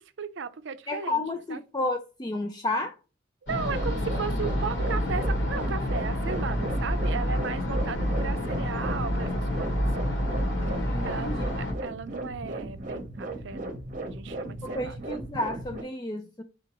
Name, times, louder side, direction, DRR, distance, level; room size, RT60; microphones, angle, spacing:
voice 1, 0.0-1.2 1.5-1.6 3.4-10.2 11.0-15.0, right 6 dB, 65° right, 0.5 m, -36 dB
voice 2, 0.9-2.9 10.9-11.5 14.6-16.4, left 2 dB, 20° left, 0.4 m, -31 dB
sound 1, 3.5-11.7, equal, 60° left, 1.5 m, -28 dB
sound 2, 3.7-15.8, right 2 dB, 40° right, 0.8 m, -37 dB
4.8 x 3.8 x 2.9 m
head